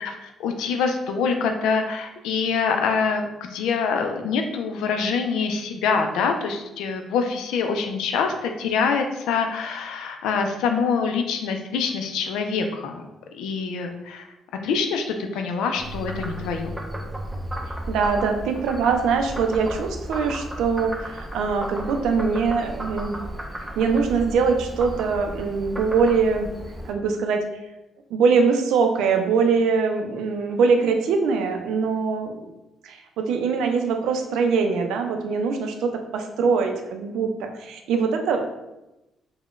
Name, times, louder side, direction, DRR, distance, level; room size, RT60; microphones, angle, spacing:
voice 1, 0.0-13.0 13.3-14.3 14.6-16.7, left 5 dB, 90° left, 5 dB, 0.3 m, -25 dB
Frog, 15.8-26.9, equal, 15° right, 0.4 m, -34 dB
voice 2, 17.9-23.2 23.8-26.5 26.8-27.4 28.1-32.5 32.8-38.4, right 5 dB, 85° right, 5 dB, 0.4 m, -22 dB
2.4 x 2.1 x 3.7 m, 0.95 s
cardioid pair, 90°, 0 cm